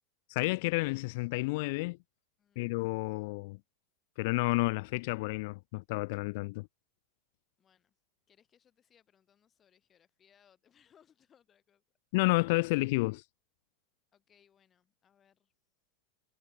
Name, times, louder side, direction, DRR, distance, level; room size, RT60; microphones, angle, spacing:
voice 1, 0.3-2.0 2.6-3.6 4.2-6.7 12.1-13.2, left 24 dB, 50° left, 0.5 m, -30 dB
voice 2, 2.4-3.0 7.6-8.0 8.3-11.8 14.1-15.5, left 8 dB, 20° left, 7.1 m, -68 dB
supercardioid pair, 175°, 0 cm